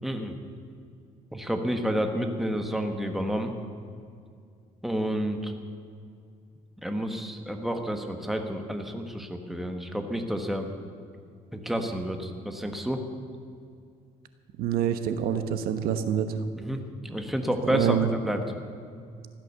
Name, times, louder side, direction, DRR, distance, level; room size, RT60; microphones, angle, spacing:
voice 1, 0.0-0.3 1.3-3.5 4.8-5.5 6.8-10.7 11.5-13.0 16.6-18.0 18.2-18.4, equal, ahead, 5 dB, 1.3 m, -30 dB
voice 2, 14.6-16.3 17.7-18.1, right 9 dB, 75° right, 9 dB, 1.1 m, -26 dB
15.0 x 12.0 x 6.9 m, 2.3 s
cardioid pair, 135°, 15 cm